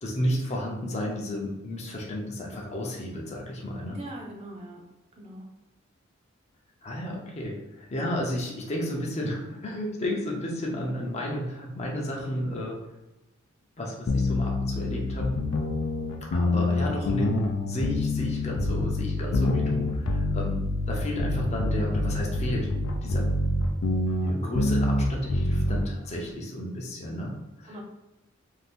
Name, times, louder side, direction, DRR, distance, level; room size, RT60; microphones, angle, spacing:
voice 1, 0.0-4.0 6.8-12.8 13.8-15.3 16.2-22.7 23.0-23.3 24.2-27.8, equal, 35° left, -1 dB, 0.5 m, -32 dB
voice 2, 3.9-4.8 5.2-5.5 27.7-27.8, right 1 dB, 35° right, -1 dB, 0.5 m, -41 dB
sound 1, 14.1-25.9, left 2 dB, 85° left, 0.4 m, -26 dB
2.6 x 2.4 x 3.5 m, 1.0 s
head